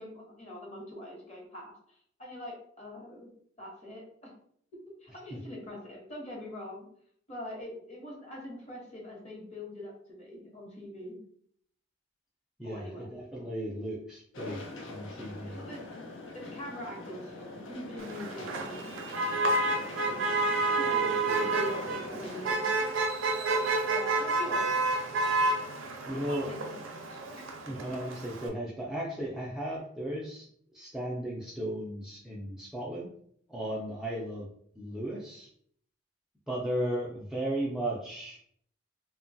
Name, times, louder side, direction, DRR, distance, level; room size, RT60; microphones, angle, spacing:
voice 1, 0.0-3.3 3.6-4.3 5.0-6.9 7.3-11.2 12.6-13.1 15.5-15.8 16.3-18.9 19.8-22.7 23.5-24.7 26.1-27.4 29.7-29.8 36.5-36.8, left 1 dB, 35° left, -2 dB, 1.0 m, -43 dB
voice 2, 12.6-14.6 14.9-15.6 26.1-26.5 27.7-30.5 30.7-33.1 33.5-34.5 34.8-35.5 36.5-38.4, right 1 dB, 5° right, -5 dB, 0.4 m, -35 dB
sound 1, 14.3-22.5, left 2 dB, 70° left, 0.5 m, -43 dB
Motor vehicle (road), 18.0-28.5, right 2 dB, 85° right, 0.5 m, -30 dB
2.8 x 2.2 x 2.6 m, 0.64 s
head